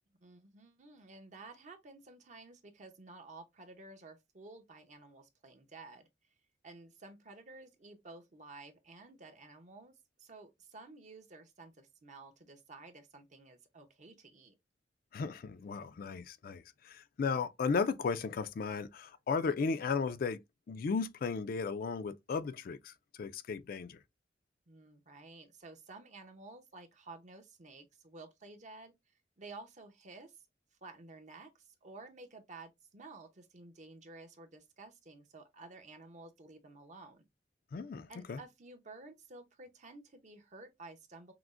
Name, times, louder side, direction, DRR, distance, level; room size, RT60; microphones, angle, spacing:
voice 1, 0.2-6.1 6.6-14.5 24.7-28.9 29.4-30.3 30.8-37.2 38.1-41.3, right 3 dB, 45° right, 0.7 m, -53 dB
voice 2, 15.1-20.4 20.7-24.0 37.7-38.4, left 5 dB, 55° left, 0.4 m, -35 dB
5.8 x 2.1 x 2.4 m
head